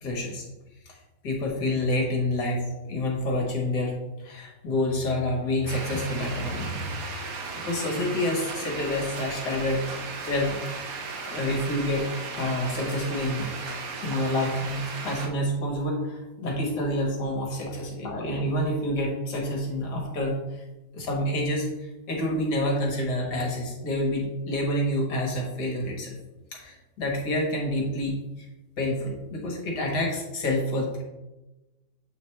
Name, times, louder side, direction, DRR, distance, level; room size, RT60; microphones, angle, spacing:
voice 1, 0.0-0.4 0.8-1.0 1.2-7.0 7.6-10.8 11.3-12.1 12.4-13.5 14.0-20.6 20.9-26.2 26.5-28.5 28.8-31.0, left 1 dB, 60° left, -1 dB, 1.7 m, -28 dB
sound 1, 5.7-15.3, right 4 dB, 60° right, 1.0 m, -36 dB
7.6 x 4.3 x 3.2 m, 1.0 s
omnidirectional pair, 2.1 m